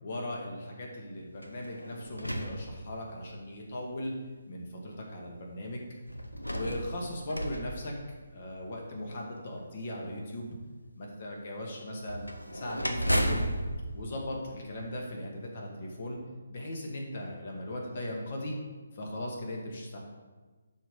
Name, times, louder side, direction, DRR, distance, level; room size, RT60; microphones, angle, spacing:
voice 1, 0.0-4.1 4.5-5.8 6.5-7.9 8.3-10.5 11.0-12.2 12.5-13.5 13.9-16.2 16.5-18.6 18.9-20.0, left 1 dB, 45° left, 0 dB, 2.1 m, -38 dB
sound 1, 1.4-3.4 4.1-4.2 6.1-8.6 12.0-15.1, equal, 85° left, 1.0 m, -34 dB
11.5 x 4.9 x 5.3 m, 1.3 s
figure-of-eight pair, 140°, 0 cm